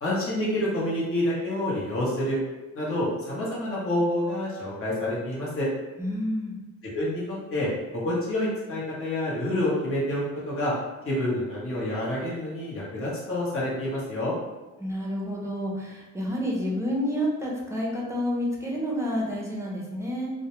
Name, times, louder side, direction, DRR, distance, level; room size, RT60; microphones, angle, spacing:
voice 1, 0.0-2.4 2.7-5.7 6.9-10.7 11.0-14.3, left 1 dB, 45° left, -7 dB, 1.0 m, -28 dB
voice 2, 6.0-6.6 14.8-20.3, equal, 10° right, -4 dB, 0.6 m, -29 dB
2.2 x 2.1 x 2.9 m, 1.1 s
cardioid pair, 90°, 30 cm